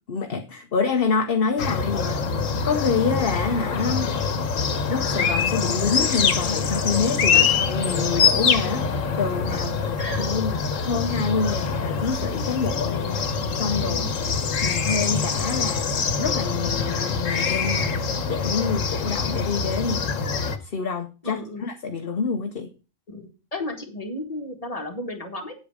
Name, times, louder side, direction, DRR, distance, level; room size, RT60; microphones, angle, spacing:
voice 1, 0.1-4.1 4.9-13.2 13.6-14.3 14.6-15.9 16.2-20.2 20.6-22.7, left 5 dB, 50° left, 1.1 m, -27 dB
sound 1, 1.6-20.6, left 5 dB, 90° left, 1.5 m, -24 dB
voice 2, 10.0-10.5 13.8-14.1 21.2-21.6 23.1-25.5, left 1 dB, 30° left, 2.2 m, -34 dB
8.8 x 8.4 x 4.9 m
omnidirectional pair, 1.3 m